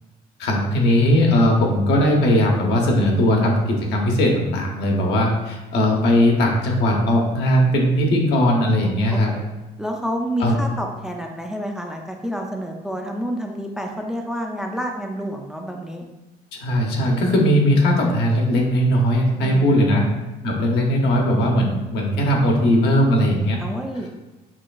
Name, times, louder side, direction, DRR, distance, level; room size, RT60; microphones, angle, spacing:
voice 1, 0.4-9.3 10.4-10.5 16.5-20.0 20.4-23.6, equal, 80° left, 0 dB, 0.8 m, -19 dB
voice 2, 9.1-9.4 9.8-16.1 19.3-20.1 23.6-24.2, equal, 5° right, 2 dB, 0.3 m, -29 dB
5.8 x 2.3 x 2.3 m, 1.1 s
cardioid pair, 110°, 17 cm